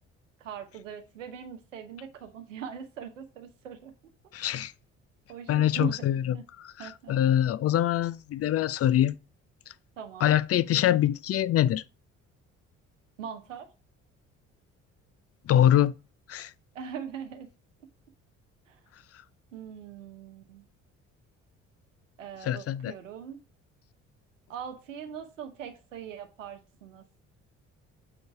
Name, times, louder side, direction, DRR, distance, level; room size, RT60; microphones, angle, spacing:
voice 1, 0.4-3.9 5.3-6.1 6.3-6.4 6.8-7.1 10.0-10.4 13.2-13.7 16.7-17.5 18.7-18.8 19.5-20.7 22.2-23.4 24.5-27.0, right 8 dB, 90° right, 1.0 m, -41 dB
voice 2, 4.3-4.7 5.5-9.2 10.2-11.8 15.5-15.9 16.3-16.5 22.4-22.9, left 11 dB, 40° left, 0.5 m, -24 dB
7.1 x 3.9 x 4.6 m
hypercardioid pair, 50°, 37 cm